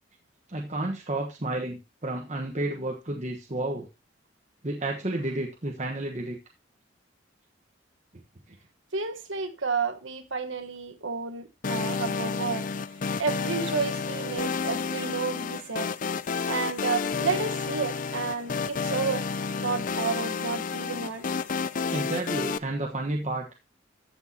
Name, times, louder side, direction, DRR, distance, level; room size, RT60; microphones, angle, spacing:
voice 1, 0.5-3.9 4.6-6.4 21.9-23.4, right 2 dB, 35° right, 1.2 m, -31 dB
voice 2, 8.9-12.7 13.2-15.9 16.5-19.2 19.5-21.3, right 4 dB, 75° right, 1.3 m, -31 dB
sound 1, 11.6-22.6, left 5 dB, 40° left, 0.4 m, -30 dB
14.5 x 6.2 x 2.9 m
head